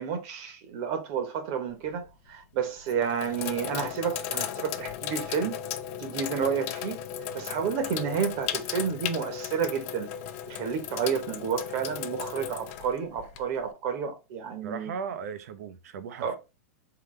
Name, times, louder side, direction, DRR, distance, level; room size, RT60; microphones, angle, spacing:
voice 1, 0.0-5.6 6.0-7.0 7.3-10.1 10.5-14.9 16.2-16.4, right 7 dB, 50° right, 1.1 m, -30 dB
Sink (filling or washing), 1.7-2.1 2.8-13.7, left 9 dB, 55° left, 0.6 m, -36 dB
voice 2, 14.6-16.4, right 6 dB, 70° right, 0.8 m, -37 dB
3.9 x 3.3 x 3.2 m
hypercardioid pair, 130°, 9 cm